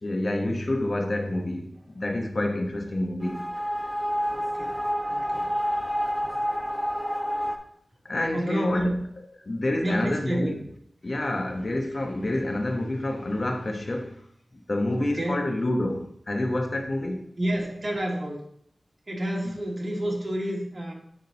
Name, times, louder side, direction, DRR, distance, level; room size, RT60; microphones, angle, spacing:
voice 1, 0.0-3.5 8.0-8.9 9.4-10.6 11.0-14.2 14.5-17.2, left 1 dB, 50° left, 1.0 m, -28 dB
sound 1, 3.2-7.6, equal, 10° right, 1.0 m, -28 dB
voice 2, 4.3-5.5 6.2-6.4 8.3-9.1 9.8-10.6 15.0-15.4 17.4-18.4 19.1-20.9, right 1 dB, 45° right, 2.0 m, -30 dB
9.4 x 3.8 x 4.0 m
cardioid pair, 45°, 0 cm